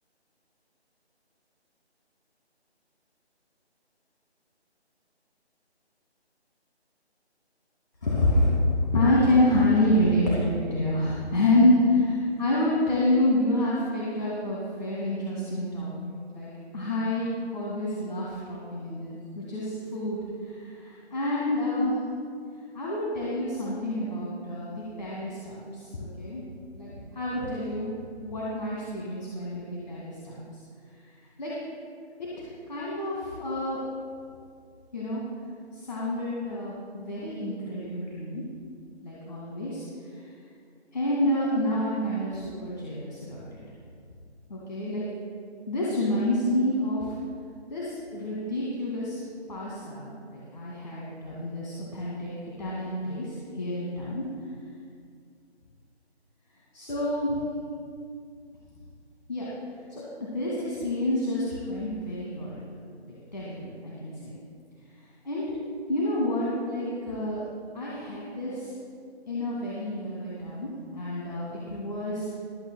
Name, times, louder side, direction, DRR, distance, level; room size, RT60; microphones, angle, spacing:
voice 1, 8.0-22.0 22.7-26.4 26.7-27.9 28.2-30.4 31.4-31.5 32.4-33.8 34.9-35.2 35.7-38.4 39.0-39.8 40.1-40.2 40.9-43.6 44.5-45.0 45.7-47.2 47.7-49.2 49.5-52.3 52.6-54.2 56.7-57.4 59.3-59.5 59.9-62.8 63.1-64.3 65.2-65.4 65.9-67.4 67.7-68.7 69.3-72.4, left 1 dB, 40° left, -6 dB, 2.4 m, -28 dB
27.0 x 9.1 x 2.3 m, 2.3 s
figure-of-eight pair, 165°, 33 cm